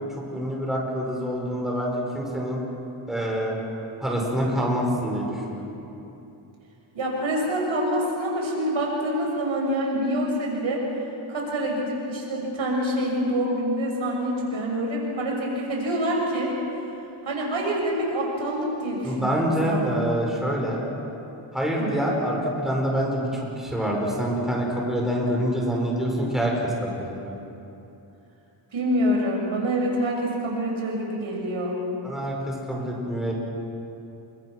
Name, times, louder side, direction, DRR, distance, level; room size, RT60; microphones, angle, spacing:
voice 1, 0.1-2.6 3.1-3.6 4.0-5.7 19.0-20.8 21.5-27.3 32.0-33.3, equal, ahead, -3 dB, 5.9 m, -26 dB
voice 2, 6.9-10.8 11.3-16.5 17.2-19.9 21.8-22.0 28.7-31.8, equal, 70° right, -1 dB, 6.5 m, -26 dB
27.5 x 25.0 x 6.3 m, 2.9 s
wide cardioid pair, 125°, 49 cm